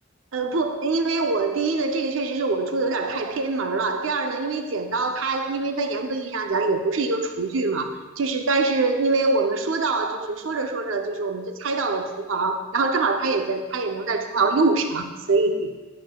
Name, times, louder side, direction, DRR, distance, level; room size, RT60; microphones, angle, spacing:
voice 1, 0.3-15.7, right 3 dB, 75° right, 0.6 m, -24 dB
10.5 x 9.4 x 2.3 m
head